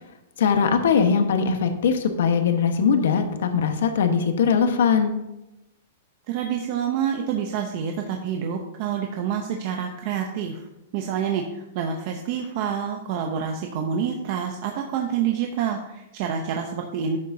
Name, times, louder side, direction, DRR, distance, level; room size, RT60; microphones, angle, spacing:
voice 1, 0.4-5.1, left 6 dB, 65° left, 6 dB, 1.2 m, -21 dB
voice 2, 6.3-10.6 10.9-17.2, right 7 dB, 35° right, 3 dB, 0.7 m, -27 dB
11.5 x 8.4 x 2.7 m, 0.92 s
supercardioid pair, 175°, 0 cm